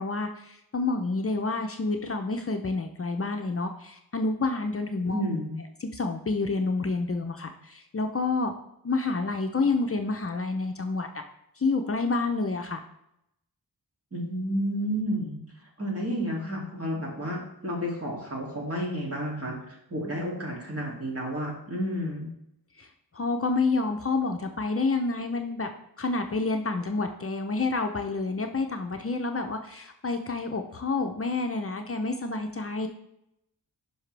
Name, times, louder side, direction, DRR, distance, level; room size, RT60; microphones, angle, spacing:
voice 1, 0.0-5.2 5.8-8.5 8.8-11.1 11.6-12.8 22.8-22.9 23.1-25.7 26.0-32.9, left 3 dB, 40° left, 4 dB, 0.7 m, -28 dB
voice 2, 5.0-5.6 14.1-15.4 15.8-22.3, equal, 40° right, -2 dB, 2.6 m, -31 dB
11.0 x 5.5 x 3.3 m, 0.80 s
wide cardioid pair, 120°, 37 cm